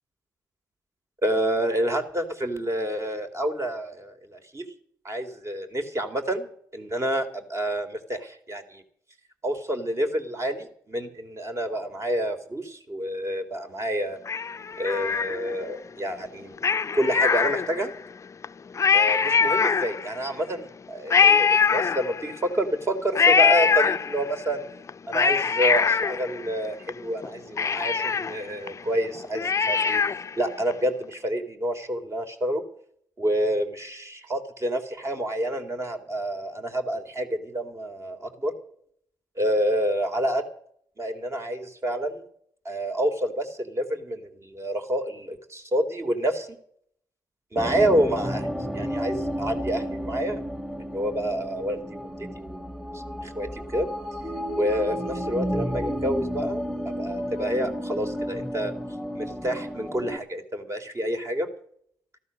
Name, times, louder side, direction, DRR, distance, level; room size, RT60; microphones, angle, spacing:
voice 1, 1.2-4.6 5.0-8.8 9.4-14.2 14.8-16.5 16.9-17.9 18.9-24.6 25.1-30.0 30.4-32.6 33.2-38.5 39.4-40.4 41.0-42.2 42.7-46.6 47.5-48.5 48.7-50.4 50.9-52.6 52.9-53.9 54.6-56.6 57.0-58.7 59.1-61.5, right 1 dB, 35° right, 5 dB, 3.6 m, -28 dB
Cat, 14.3-15.7 16.6-18.0 18.4-18.5 18.7-20.3 21.1-22.5 23.1-24.4 24.9-26.9 27.2-27.3 27.6-30.4 30.7-30.8, left 6 dB, 40° left, 0.5 m, -23 dB
sound 1, 47.6-60.2, equal, 5° right, 1.9 m, -32 dB
15.0 x 12.5 x 6.5 m, 0.64 s
supercardioid pair, 50°, 8 cm